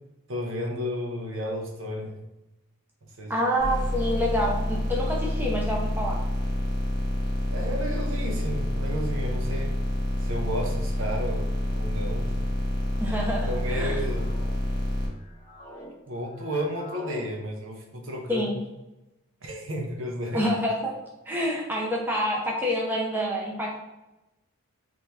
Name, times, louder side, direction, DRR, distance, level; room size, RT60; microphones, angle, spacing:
voice 1, 0.3-2.1 3.2-3.3 7.5-9.8 10.2-12.3 13.5-14.3 16.1-18.5 19.4-20.5, equal, 60° right, 1 dB, 0.8 m, -32 dB
voice 2, 3.3-6.2 13.0-14.0 18.3-18.6 20.3-20.7 21.3-23.7, equal, 10° right, -3 dB, 0.6 m, -27 dB
sound 1, 3.6-15.1, left 1 dB, 45° right, 1.3 m, -28 dB
sound 2, 11.5-11.9 12.8-13.3 13.9-14.6 15.0-17.3, equal, 30° left, 1.0 m, -46 dB
4.0 x 3.1 x 3.4 m, 0.97 s
head